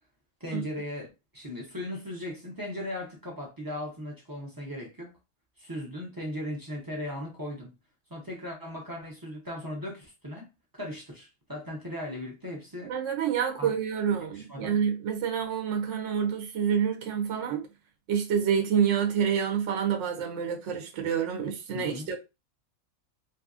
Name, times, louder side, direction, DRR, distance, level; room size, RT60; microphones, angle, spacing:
voice 1, 0.4-5.2 5.6-7.7 8.1-10.5 10.7-12.9 13.6-13.7 14.1-14.8 21.7-22.1, left 1 dB, 30° right, 0.4 m, -38 dB
voice 2, 12.9-17.7 18.1-22.2, right 7 dB, 65° right, 0.9 m, -28 dB
2.7 x 2.7 x 2.3 m
omnidirectional pair, 1.5 m